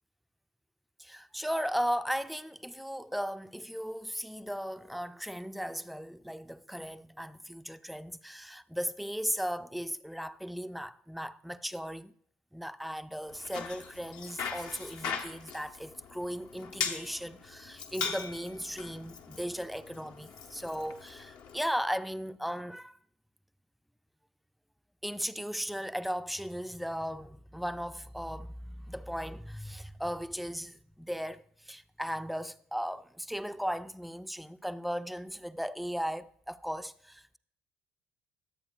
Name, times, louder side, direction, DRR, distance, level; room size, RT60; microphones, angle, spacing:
voice 1, 1.0-12.1 12.5-23.0 25.0-37.4, equal, ahead, 0.5 m, -37 dB
Bicycle, 13.3-21.6, left 6 dB, 65° left, 1.0 m, -40 dB
22.0 x 8.3 x 2.3 m
figure-of-eight pair, 50°, 7 cm